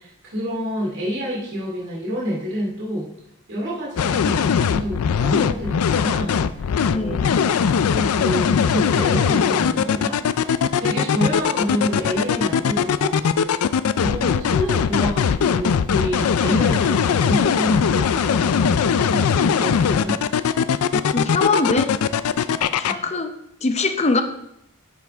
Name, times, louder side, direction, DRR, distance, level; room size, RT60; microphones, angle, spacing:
voice 1, 0.0-3.1 3.5-7.2 7.5-10.2 10.8-13.1 13.9-20.2 22.8-23.0, equal, 60° right, -4 dB, 2.4 m, -28 dB
sound 1, 4.0-22.9, left 7 dB, 85° left, 0.4 m, -20 dB
voice 2, 6.9-7.4 20.9-22.0 22.8-24.2, left 3 dB, 30° left, 7 dB, 0.7 m, -23 dB
9.4 x 7.1 x 3.5 m, 0.79 s
head